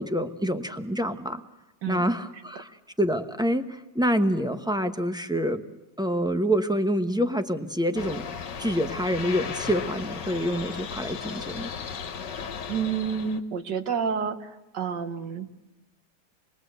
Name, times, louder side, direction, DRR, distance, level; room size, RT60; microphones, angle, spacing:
voice 1, 0.0-1.4 1.9-5.6 6.0-11.7, equal, 5° right, 7 dB, 0.6 m, -27 dB
sound 1, 7.9-13.4, left 6 dB, 75° left, 1.8 m, -36 dB
voice 2, 12.7-15.5, right 6 dB, 75° right, 8 dB, 1.9 m, -29 dB
26.5 x 21.0 x 8.0 m, 1.0 s
omnidirectional pair, 1.9 m